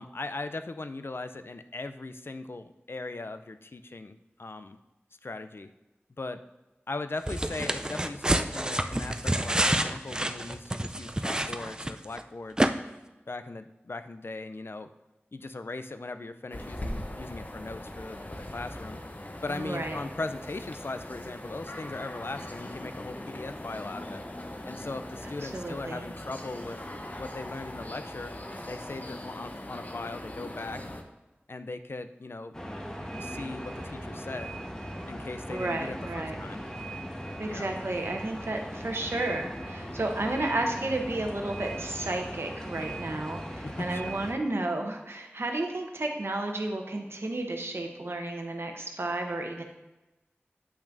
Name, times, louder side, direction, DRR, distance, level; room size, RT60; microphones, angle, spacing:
voice 1, 0.0-4.8 5.2-5.7 6.2-6.4 6.9-12.7 13.3-14.9 15.3-19.0 19.4-24.2 24.6-26.8 27.2-28.3 28.7-30.8 31.5-32.5 33.2-34.6 35.1-36.6 37.4-37.7 43.6-44.2, left 3 dB, 65° left, 10 dB, 0.4 m, -39 dB
sound 1, 7.3-12.2 12.6-12.7, right 1 dB, 20° right, 0.4 m, -28 dB
sound 2, 16.5-31.0, left 1 dB, 40° left, 0.7 m, -40 dB
voice 2, 19.5-20.0 25.4-26.1 35.5-36.4 37.4-49.6, right 2 dB, 75° right, 3 dB, 0.9 m, -32 dB
sound 3, 32.5-44.3, right 1 dB, 15° left, 1.2 m, -39 dB
8.6 x 5.8 x 2.6 m, 1.1 s
wide cardioid pair, 45°, 4 cm